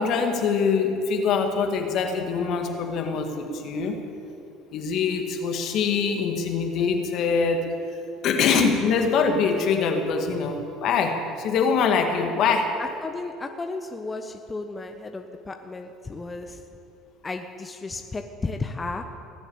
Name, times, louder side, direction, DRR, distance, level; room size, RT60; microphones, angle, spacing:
voice 1, 0.0-4.0 4.7-7.7 8.2-12.8, left 5 dB, 60° left, 4 dB, 2.0 m, -24 dB
voice 2, 12.8-16.6 17.2-19.0, left 3 dB, 25° left, 5 dB, 1.0 m, -34 dB
19.0 x 7.9 x 8.8 m, 2.8 s
hypercardioid pair, 70°, 0 cm